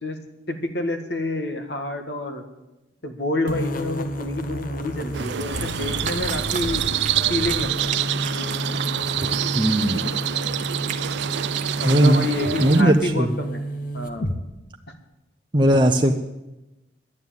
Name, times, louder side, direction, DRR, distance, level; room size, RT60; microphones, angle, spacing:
voice 1, 0.5-2.4 3.0-6.8 7.3-8.2 10.0-10.1 11.8-13.6 13.9-14.3, left 1 dB, 65° left, 6 dB, 1.7 m, -28 dB
sound 1, 3.5-14.4, equal, 50° left, 1.1 m, -31 dB
Cat, 4.9-13.1, right 6 dB, 40° right, 1.1 m, -37 dB
sound 2, 5.1-12.8, right 11 dB, 70° right, 0.4 m, -27 dB
voice 2, 9.6-10.0 11.8-12.2 12.6-13.3 15.5-16.1, right 1 dB, 25° right, 3 dB, 0.7 m, -18 dB
11.5 x 9.6 x 8.9 m, 1.0 s
head